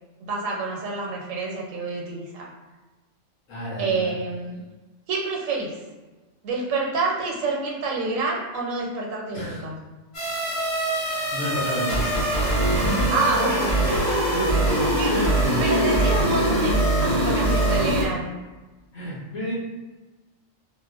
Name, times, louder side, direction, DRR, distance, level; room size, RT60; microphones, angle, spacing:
voice 1, 0.2-2.5 3.8-4.6 5.1-5.8 6.4-9.8 13.1-13.6 15.0-15.1 15.6-18.4, right 3 dB, 85° right, -2 dB, 1.2 m, -27 dB
voice 2, 3.5-4.1 9.3-9.6 10.9-13.1 14.8-15.7 18.9-19.5, equal, 75° left, -7 dB, 1.2 m, -31 dB
sound 1, 10.1-18.0, right 1 dB, 50° left, 1.6 m, -22 dB
4.4 x 2.2 x 2.4 m, 1.2 s
omnidirectional pair, 1.3 m